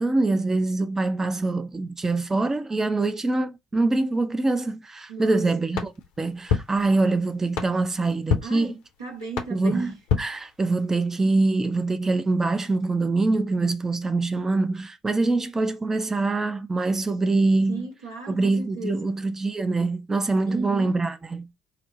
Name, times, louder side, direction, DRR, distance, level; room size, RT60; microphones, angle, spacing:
voice 1, 0.0-5.9 6.2-8.8 9.5-9.9 10.2-17.9 18.3-21.5, right 3 dB, 20° right, 0.4 m, -24 dB
voice 2, 5.1-5.5 8.4-10.0 17.7-19.2 20.5-21.0, right 3 dB, 80° right, 1.1 m, -35 dB
sound 1, 5.7-11.1, left 6 dB, 65° left, 0.8 m, -31 dB
4.2 x 2.0 x 3.7 m
figure-of-eight pair, 55°, 2 cm